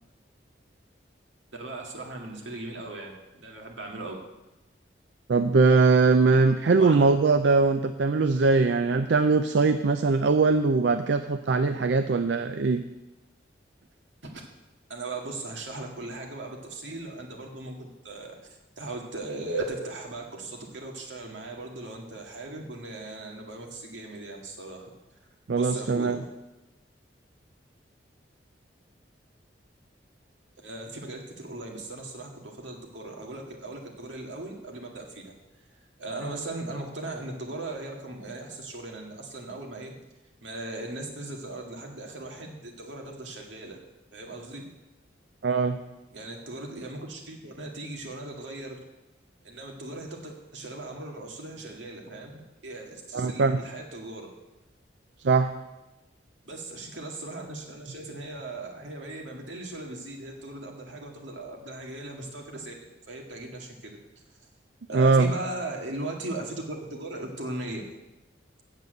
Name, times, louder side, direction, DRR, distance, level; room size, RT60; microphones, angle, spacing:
voice 1, 1.5-4.2 6.8-7.0 14.2-14.4 14.9-18.4 18.8-24.9 25.5-26.3 30.6-35.3 36.0-39.9 40.4-43.8 44.1-44.6 46.1-48.8 49.4-54.3 56.4-62.7 63.1-64.0 64.9-67.8, right 2 dB, 85° right, 1 dB, 2.0 m, -38 dB
voice 2, 5.3-12.8 25.5-26.2 45.4-45.8 53.1-53.6 55.2-55.5 64.9-65.3, right 4 dB, 70° right, 9 dB, 0.4 m, -21 dB
8.2 x 7.5 x 7.8 m, 1.0 s
head